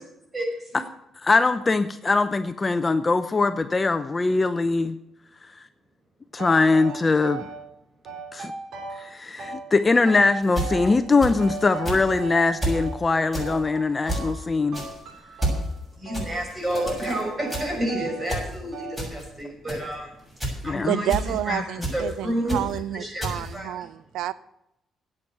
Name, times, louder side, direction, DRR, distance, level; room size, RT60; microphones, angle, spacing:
voice 1, 0.3-0.8 16.0-20.1 20.6-21.6 21.9-22.6 22.9-23.7, right 1 dB, 20° right, 1 dB, 6.2 m, -30 dB
voice 2, 1.2-5.0 6.3-7.4 8.3-8.5 9.0-14.8 20.6-21.0, left 3 dB, 25° left, 10 dB, 0.7 m, -22 dB
sound 1, 6.4-7.6 8.1-9.1 9.4-11.1 11.4-13.0 13.4-14.4 14.7-15.7 16.1-16.3 16.7-18.3 18.7-19.1, right 5 dB, 70° right, 3.5 m, -38 dB
sound 2, 10.4-11.6 11.9-12.2 12.6-12.9 13.3-13.6 14.1-14.4 14.7-15.0 15.4-15.7 16.1-17.2 17.5-17.8 18.3-18.5 19.0-19.3 19.7-19.9 20.4-20.7 21.1-21.4 21.8-22.1 22.5-22.8 23.2-23.5, right 1 dB, 5° right, 7.0 m, -30 dB
voice 3, 20.9-24.3, right 12 dB, 85° right, 17 dB, 0.4 m, -29 dB
11.0 x 8.8 x 9.1 m, 0.83 s
cardioid pair, 90°, 0 cm